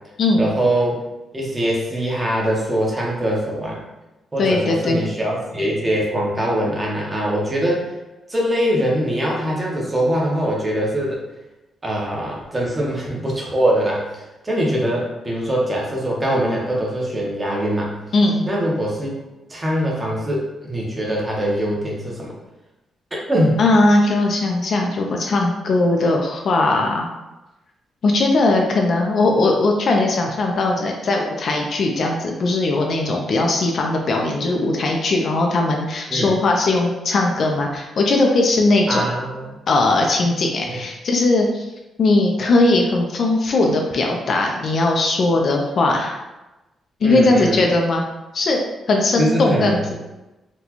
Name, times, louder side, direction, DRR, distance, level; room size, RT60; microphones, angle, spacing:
voice 1, 0.3-1.0 1.3-3.8 4.3-7.9 8.3-11.2 11.8-17.9 18.5-19.2 19.5-22.3 23.1-23.6 36.1-36.4 38.9-39.6 40.7-40.8 47.0-47.6 49.2-49.9, equal, 15° right, -3 dB, 0.8 m, -22 dB
voice 2, 4.4-5.0 18.1-18.4 23.6-27.1 28.0-39.1 39.7-41.7 42.0-46.2 47.0-48.0 48.3-48.6 48.9-49.9, left 2 dB, 50° left, 1 dB, 0.4 m, -19 dB
3.9 x 2.2 x 2.9 m, 1.0 s
cardioid pair, 145°, 0 cm